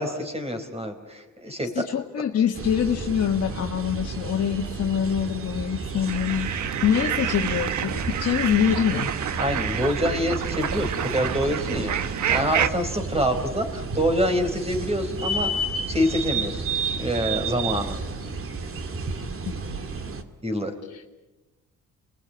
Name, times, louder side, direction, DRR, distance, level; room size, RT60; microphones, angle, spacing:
voice 1, 0.0-1.8 9.4-16.6 17.0-18.0 20.4-20.7, equal, 20° right, 7 dB, 4.6 m, -26 dB
voice 2, 1.8-9.1 19.4-19.8 20.9-21.0, left 8 dB, 55° left, 1 dB, 1.7 m, -25 dB
sound 1, 2.6-20.2, right 3 dB, 45° right, 2.3 m, -32 dB
sound 2, 6.1-12.7, right 9 dB, 70° right, 1.4 m, -28 dB
28.0 x 20.5 x 9.0 m, 1.1 s
cardioid pair, 90°, 30 cm